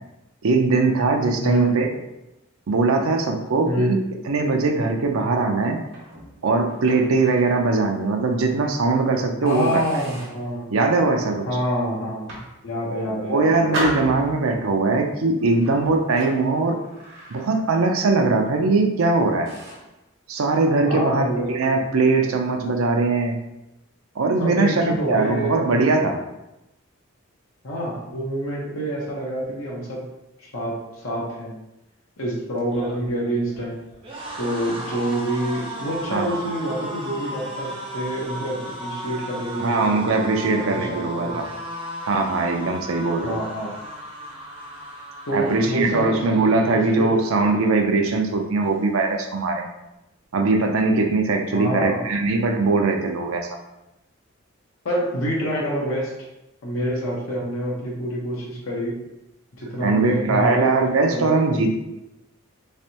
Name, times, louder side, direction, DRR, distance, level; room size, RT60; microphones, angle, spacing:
voice 1, 0.4-1.9 2.7-4.0 4.2-5.8 6.4-9.8 10.7-11.5 13.2-16.8 17.3-19.5 20.3-23.4 24.2-26.2 36.1-36.3 39.6-41.5 42.0-43.4 45.3-49.7 50.3-53.5 59.8-61.8, right 3 dB, 85° right, 4 dB, 0.5 m, -21 dB
voice 2, 1.4-1.8 3.7-3.9 9.4-10.8 11.5-13.7 20.8-21.5 24.4-25.5 27.6-30.1 30.4-30.8 31.0-31.5 32.2-33.8 34.4-39.9 40.4-41.4 43.2-43.7 45.3-46.1 46.7-47.1 51.5-52.0 54.8-56.1 56.6-59.0 59.6-60.7 61.1-61.4, equal, 75° left, -4 dB, 0.8 m, -27 dB
sound 1, 5.9-7.6 8.1-8.3 8.8-9.0 9.5-10.5 11.0-11.4 12.1-13.1 13.7-14.7 15.5-17.9 18.1-18.4 19.0-19.1 19.4-19.9, right 1 dB, 60° right, 1.2 m, -35 dB
sound 2, 32.6-47.8 48.1-48.4 48.6-49.4, right 1 dB, 25° right, 0.6 m, -36 dB
3.3 x 3.2 x 2.8 m, 0.92 s
head